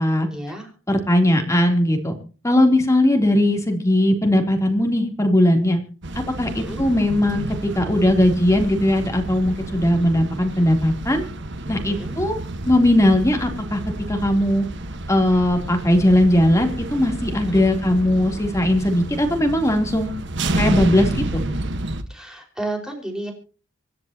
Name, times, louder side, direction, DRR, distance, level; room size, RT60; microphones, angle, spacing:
voice 1, 0.3-0.7 6.5-6.9 11.9-12.2 17.4-17.7 22.1-23.3, right 2 dB, 5° right, 2 dB, 5.4 m, -32 dB
voice 2, 0.9-2.2 2.4-5.8 6.2-11.2 11.7-12.4 12.7-13.8 14.1-14.7 15.1-20.1 20.6-21.4, left 1 dB, 15° left, 3 dB, 3.5 m, -19 dB
sound 1, 6.0-22.0, right 1 dB, 60° right, 1.6 m, -30 dB
26.5 x 10.5 x 3.0 m, 0.37 s
head